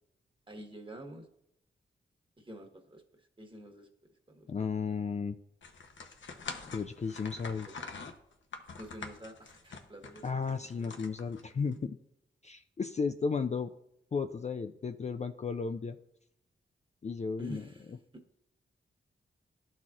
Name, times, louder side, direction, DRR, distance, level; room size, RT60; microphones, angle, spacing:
voice 1, 0.5-1.3 2.4-3.0 3.4-3.9 4.3-4.5 7.5-8.1 8.8-11.0 17.4-17.9 18.1-18.2, right 1 dB, 25° right, 4 dB, 1.4 m, -48 dB
voice 2, 4.5-5.3 6.7-7.7 10.2-12.0 12.4-13.7 14.1-16.0 17.0-18.0, left 5 dB, 35° left, 7 dB, 0.4 m, -34 dB
sound 1, 5.6-11.7, left 4 dB, 65° left, 0.8 m, -45 dB
12.0 x 4.1 x 2.5 m, 0.80 s
cardioid pair, 45°, 21 cm